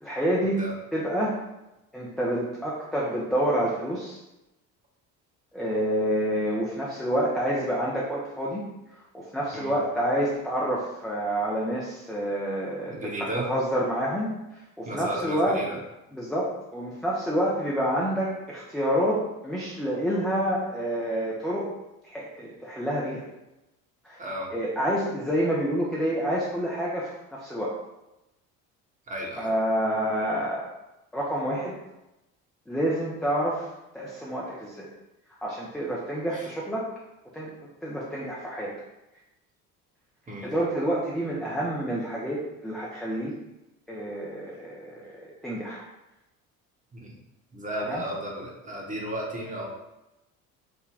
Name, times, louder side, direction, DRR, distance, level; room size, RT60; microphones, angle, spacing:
voice 1, 0.0-1.4 1.9-4.2 5.5-8.7 9.1-14.3 14.8-15.6 16.1-21.7 22.0-23.3 24.0-24.2 24.5-27.7 29.4-30.7 31.1-31.8 32.7-33.7 33.9-34.9 35.4-36.9 37.3-37.5 37.8-38.7 40.4-43.3 43.9-45.9 47.9-48.0, equal, ahead, -6 dB, 0.3 m, -28 dB
voice 2, 12.9-13.5 14.9-15.8 24.2-24.5 29.1-29.5 36.3-36.5 40.3-40.5 46.9-47.2 47.5-49.7, right 1 dB, 20° right, -2 dB, 0.9 m, -34 dB
3.4 x 2.2 x 3.6 m, 0.96 s
figure-of-eight pair, 55°, 44 cm